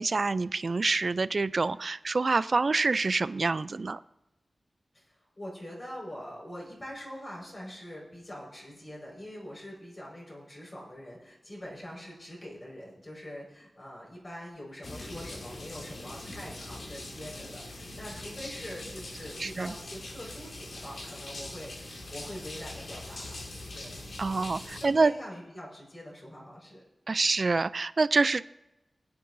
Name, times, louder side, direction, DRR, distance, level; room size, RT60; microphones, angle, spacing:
voice 1, 0.0-4.0 19.4-19.7 24.2-25.1 27.1-28.4, right 3 dB, 55° right, 16 dB, 0.3 m, -26 dB
voice 2, 4.9-23.4 23.7-24.0 24.8-26.8, equal, 40° left, -4 dB, 5.0 m, -44 dB
sound 1, 14.8-24.9, left 1 dB, 80° left, 2.1 m, -42 dB
21.5 x 9.6 x 2.7 m, 0.94 s
wide cardioid pair, 90°, 0 cm